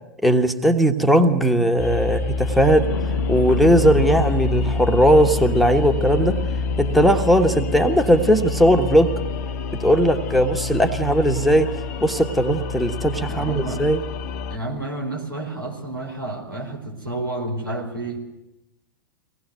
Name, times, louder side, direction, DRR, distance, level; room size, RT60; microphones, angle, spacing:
voice 1, 0.2-6.4 6.8-9.1 9.7-11.7 12.0-14.0, equal, ahead, 5 dB, 1.3 m, -18 dB
sound 1, 1.8-14.6, left 4 dB, 50° left, 0.9 m, -27 dB
sound 2, 2.4-7.9 9.1-9.4, left 4 dB, 80° left, 0.9 m, -32 dB
voice 2, 13.3-13.9 14.5-18.2, right 2 dB, 85° right, 0 dB, 5.0 m, -30 dB
24.0 x 18.5 x 8.0 m, 0.91 s
figure-of-eight pair, 100°, 11 cm